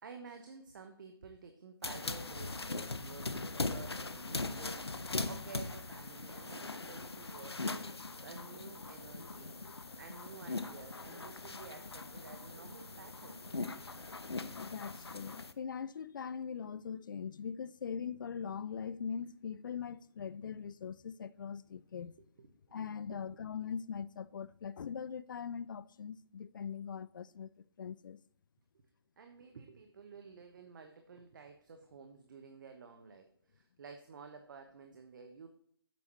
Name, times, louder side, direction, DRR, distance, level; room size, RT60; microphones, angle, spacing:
voice 1, 0.0-9.5 10.0-13.4 22.2-23.4 29.2-35.5, right 5 dB, 50° right, 1.1 m, -52 dB
sound 1, 1.8-15.5, left 3 dB, 85° left, 0.8 m, -41 dB
voice 2, 14.5-22.1 22.7-27.5 27.8-28.2, left 7 dB, 55° left, 0.5 m, -41 dB
9.7 x 8.5 x 2.9 m
figure-of-eight pair, 140°, 13 cm